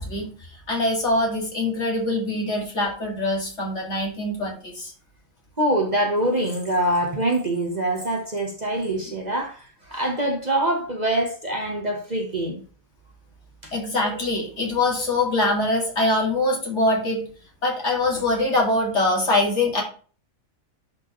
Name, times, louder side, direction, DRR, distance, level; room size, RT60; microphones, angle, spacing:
voice 1, 0.0-4.9 8.7-8.8 13.7-17.2 17.6-19.8, left 2 dB, 55° left, 2.6 m, -23 dB
voice 2, 5.6-12.6 13.6-13.7 14.0-14.3, right 1 dB, 35° right, 1.2 m, -24 dB
10.5 x 4.5 x 3.0 m
omnidirectional pair, 1.4 m